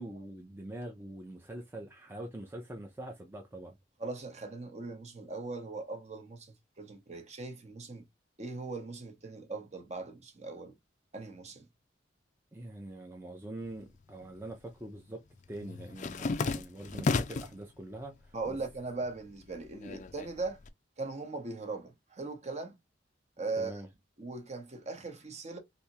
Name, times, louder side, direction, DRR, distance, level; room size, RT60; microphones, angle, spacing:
voice 1, 0.0-3.8 12.5-18.6 23.6-23.9, right 1 dB, 15° right, 0.5 m, -44 dB
voice 2, 4.0-8.0 8.4-10.7 11.1-11.7 18.3-20.6 21.0-22.8 23.4-23.7 24.2-25.6, right 3 dB, 40° right, 0.8 m, -39 dB
sound 1, 13.7-14.5 14.8-17.6 18.1-18.7 19.0-20.7, left 4 dB, 40° left, 0.4 m, -34 dB
3.4 x 2.7 x 2.8 m
head